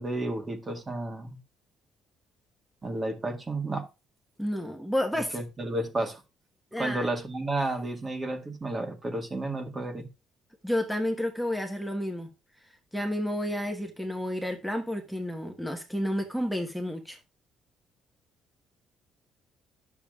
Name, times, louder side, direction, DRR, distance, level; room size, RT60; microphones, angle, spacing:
voice 1, 0.0-1.4 2.8-3.9 5.3-6.2 6.8-10.1, right 2 dB, 25° right, 1.6 m, -32 dB
voice 2, 4.4-5.4 6.7-7.1 10.6-12.3 12.9-17.2, left 1 dB, ahead, 1.2 m, -30 dB
10.5 x 7.1 x 2.4 m
cardioid pair, 110°, 0 cm